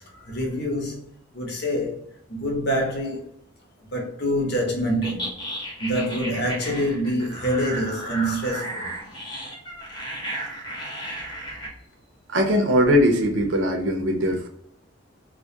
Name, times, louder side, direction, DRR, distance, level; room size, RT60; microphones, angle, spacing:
voice 1, 0.1-2.0 2.3-3.4 3.9-5.4 5.8-8.9, equal, 55° left, 0.8 m, -26 dB
sound 1, 5.0-11.7, right 1 dB, 25° left, 0.8 m, -34 dB
voice 2, 12.3-14.5, equal, 75° right, 0.6 m, -20 dB
2.3 x 2.1 x 2.7 m
head